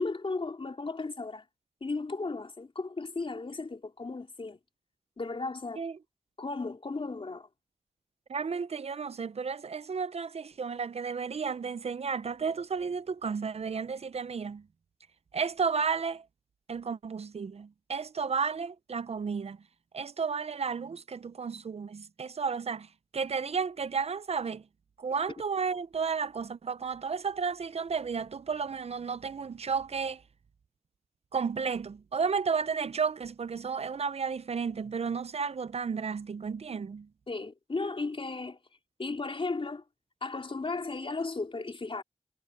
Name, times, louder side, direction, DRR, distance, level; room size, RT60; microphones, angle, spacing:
voice 1, 0.0-1.4 1.8-4.6 5.2-5.8 6.4-7.5 37.3-38.6 39.0-39.8 40.2-42.0, left 3 dB, 50° left, 3.6 m, -35 dB
voice 2, 8.3-14.6 15.3-16.2 16.7-19.6 19.9-22.9 23.1-24.6 25.0-30.2 31.3-37.1, right 5 dB, 60° right, 0.5 m, -32 dB
wide cardioid pair, 100°, 12 cm